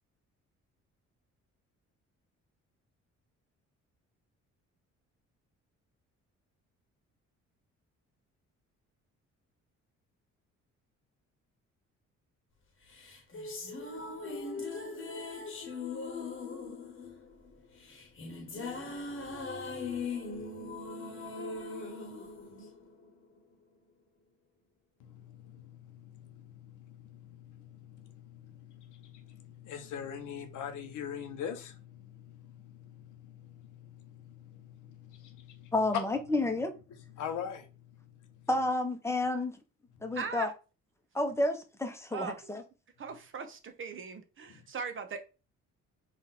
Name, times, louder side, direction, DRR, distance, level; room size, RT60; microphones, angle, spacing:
sound 1, 13.0-23.4, left 3 dB, 40° left, 1.1 m, -40 dB
voice 1, 25.0-36.0 37.1-38.5 40.0-40.1 44.5-44.7, left 8 dB, 85° left, 0.9 m, -43 dB
voice 2, 35.7-36.7 38.5-39.5 40.0-40.5 41.1-42.6, left 2 dB, 10° left, 0.8 m, -30 dB
voice 3, 40.2-40.5 42.1-42.4 43.0-45.2, right 5 dB, 40° right, 0.8 m, -39 dB
3.7 x 2.5 x 4.1 m
cardioid pair, 90°, 30 cm